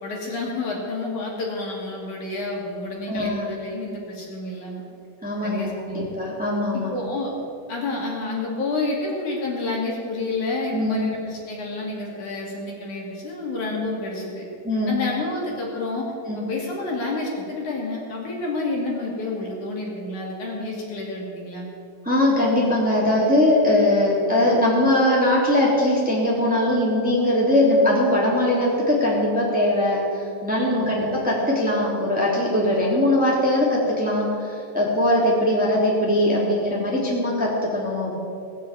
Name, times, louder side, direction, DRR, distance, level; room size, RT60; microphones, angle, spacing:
voice 1, 0.0-4.8 5.4-6.1 6.7-7.3 7.7-14.5 14.9-16.0 16.3-21.7 30.7-31.0, left 2 dB, 65° left, -3 dB, 3.9 m, -29 dB
voice 2, 3.1-3.4 5.2-6.9 10.7-11.0 14.6-15.0 16.2-16.4 22.0-38.2, left 1 dB, 5° right, -5 dB, 2.9 m, -21 dB
19.0 x 7.3 x 8.5 m, 2.5 s
omnidirectional pair, 3.9 m